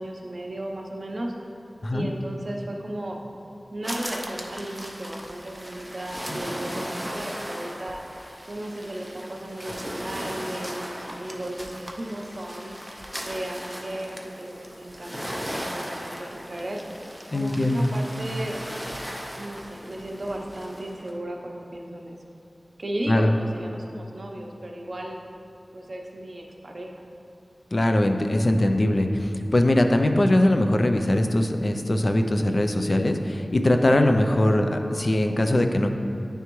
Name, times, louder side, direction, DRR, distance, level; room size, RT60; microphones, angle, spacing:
voice 1, 0.0-1.3 1.9-3.2 3.7-8.0 8.5-16.8 17.3-18.6 19.4-22.2 22.8-25.2 25.7-27.1, right 1 dB, 55° right, 1 dB, 0.6 m, -35 dB
sound 1, 3.8-21.1, equal, ahead, 0.5 m, -37 dB
voice 2, 17.3-17.9 23.1-23.3 27.7-35.9, left 1 dB, 50° left, 5 dB, 0.4 m, -21 dB
9.4 x 3.4 x 3.0 m, 2.6 s
wide cardioid pair, 75°, 0 cm